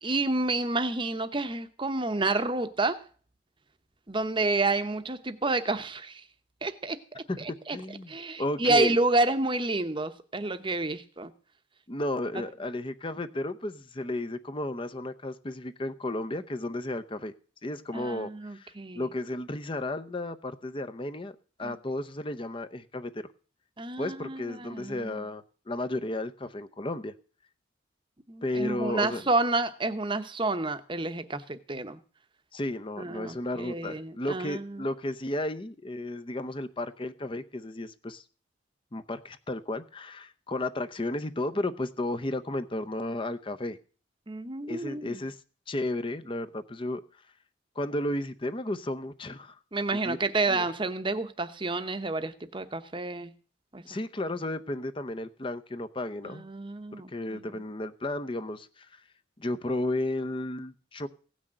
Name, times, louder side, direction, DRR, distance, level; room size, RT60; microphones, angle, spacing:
voice 1, 0.0-3.0 4.1-6.2 6.6-7.8 8.1-11.3 17.9-19.1 21.6-21.8 23.8-25.2 28.3-32.0 33.0-34.8 44.3-45.2 49.7-53.3 53.7-53.8 56.2-57.5, right 2 dB, 25° right, 0.9 m, -29 dB
voice 2, 7.3-8.1 8.4-9.0 11.9-17.3 17.6-23.3 24.0-27.1 28.4-29.2 32.5-38.2 38.9-43.8 44.7-45.4 45.7-47.0 47.8-49.6 49.9-50.2 50.5-50.6 53.8-56.4 57.1-59.0 59.4-61.1, left 1 dB, 25° left, 0.7 m, -33 dB
16.5 x 6.2 x 8.7 m
head